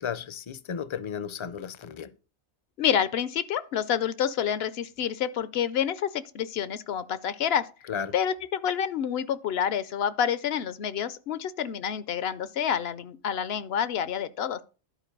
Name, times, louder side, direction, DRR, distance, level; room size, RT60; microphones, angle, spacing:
voice 1, 0.0-2.1 7.9-8.1, left 7 dB, 40° left, 0.4 m, -34 dB
voice 2, 2.8-7.7 8.1-14.6, left 8 dB, 70° left, 0.8 m, -28 dB
11.5 x 4.5 x 5.2 m
omnidirectional pair, 1.1 m